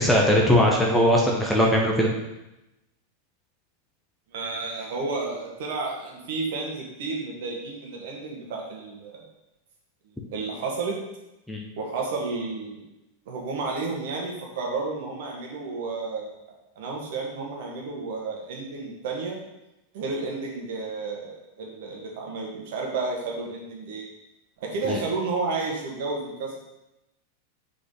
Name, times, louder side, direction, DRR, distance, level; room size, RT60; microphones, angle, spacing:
voice 1, 0.0-2.1 11.5-11.6 24.9-25.0, equal, 5° left, -2 dB, 1.2 m, -20 dB
voice 2, 4.3-9.2 10.3-11.0 11.8-12.8 13.2-19.4 19.9-24.0 24.6-26.7, right 3 dB, 55° right, -1 dB, 1.8 m, -31 dB
6.4 x 4.9 x 3.9 m, 0.94 s
figure-of-eight pair, 90°, 0 cm